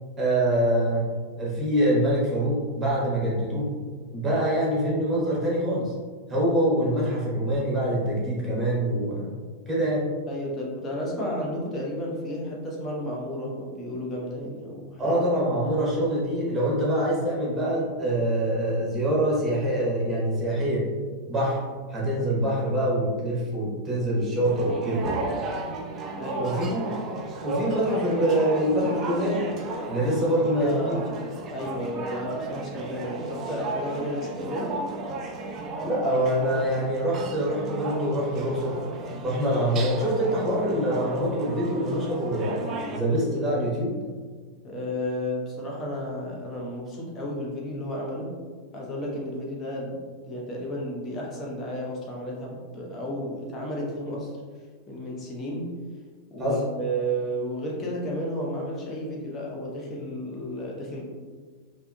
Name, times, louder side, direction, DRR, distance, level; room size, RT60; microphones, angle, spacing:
voice 1, 0.2-1.1 1.4-3.7 4.1-5.9 6.3-9.3 9.7-10.1 15.0-20.9 21.3-21.6 21.9-25.1 26.3-26.9 27.4-29.5 29.9-31.0 35.8-38.8 39.2-42.6 42.9-43.9 56.4-56.6, right 1 dB, 15° right, -5 dB, 1.1 m, -25 dB
voice 2, 10.3-15.2 26.1-26.6 30.2-31.1 31.5-34.8 44.6-48.4 48.7-54.3 54.9-55.8 56.3-61.1, equal, 25° left, -2 dB, 0.8 m, -32 dB
sound 1, 24.4-43.0, right 2 dB, 30° right, 0.4 m, -34 dB
3.5 x 2.6 x 2.3 m, 1.5 s
figure-of-eight pair, 90°, 0 cm